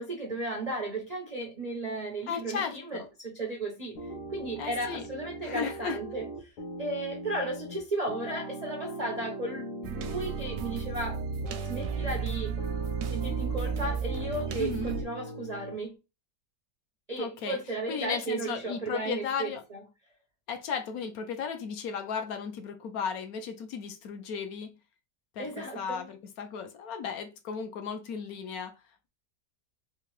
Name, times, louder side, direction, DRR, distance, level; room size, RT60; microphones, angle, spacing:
voice 1, 0.0-6.5 6.8-11.2 11.7-12.6 13.1-15.9 17.1-19.8 25.4-26.1, right 2 dB, 90° right, 0.3 m, -35 dB
voice 2, 2.3-3.1 4.6-5.1 5.4-6.0 14.6-14.9 17.2-17.6 17.9-19.6 20.5-24.8 25.4-28.7, left 6 dB, 70° left, 0.9 m, -35 dB
sound 1, 3.9-15.8, right 1 dB, 85° left, 1.4 m, -41 dB
sound 2, 9.8-15.0, right 6 dB, 70° right, 0.8 m, -33 dB
3.7 x 2.5 x 3.0 m
omnidirectional pair, 1.8 m